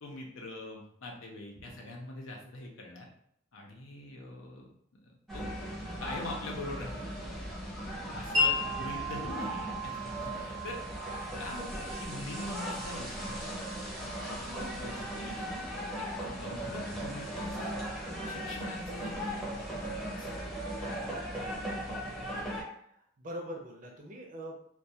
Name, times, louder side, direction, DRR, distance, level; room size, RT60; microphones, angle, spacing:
voice 1, 0.0-3.1 3.5-4.7 5.3-7.1 7.3-7.5 8.1-10.8 11.4-13.5 14.0-15.7 16.0-17.8 18.2-19.5 19.7-20.6, left 1 dB, 85° left, 0 dB, 0.6 m, -43 dB
sound 1, 5.3-22.6, equal, ahead, 0.6 m, -38 dB
Wind chime, 8.3-16.0, left 1 dB, 75° right, 0.8 m, -36 dB
voice 2, 21.0-21.3 22.7-24.6, equal, 45° right, 0 dB, 0.5 m, -44 dB
2.3 x 2.2 x 2.7 m, 0.69 s
head